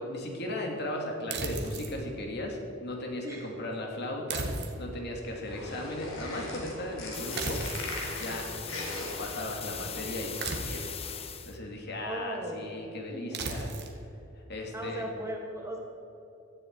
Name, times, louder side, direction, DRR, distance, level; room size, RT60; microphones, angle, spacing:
voice 1, 0.0-7.6 8.1-10.9 11.5-13.7 14.5-15.0, left 1 dB, 55° left, 1 dB, 2.6 m, -37 dB
sound 1, 1.3-2.0 4.3-5.1 7.4-7.9 10.4-11.0 13.3-14.0, right 3 dB, 60° right, 1.9 m, -35 dB
sound 2, 5.3-10.3, left 1 dB, 85° left, 4.2 m, -40 dB
sound 3, 7.1-11.6, left 8 dB, 30° left, 0.9 m, -40 dB
voice 2, 12.0-12.7 13.1-13.4 14.7-15.8, right 1 dB, 15° right, 0 dB, 1.7 m, -37 dB
17.5 x 13.5 x 4.7 m, 3.0 s
head